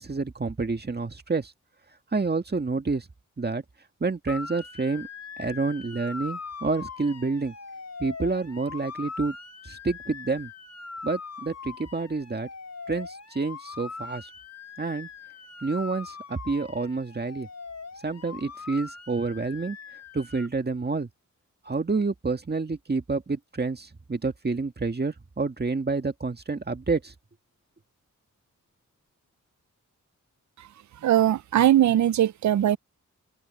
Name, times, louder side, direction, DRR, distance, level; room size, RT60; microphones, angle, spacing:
voice 1, 0.0-1.5 2.1-3.1 3.4-3.6 4.0-5.1 5.4-7.5 8.0-9.3 9.6-10.5 11.0-12.5 12.9-14.3 14.8-15.1 15.6-17.5 18.0-19.8 20.1-21.1 21.6-27.1, right 3 dB, 35° right, 1.8 m, -28 dB
Motor vehicle (road) / Siren, 4.3-20.5, left 4 dB, 60° left, 4.9 m, -41 dB
voice 2, 31.0-32.8, right 11 dB, 70° right, 0.5 m, -20 dB
open air
cardioid pair, 75°, 31 cm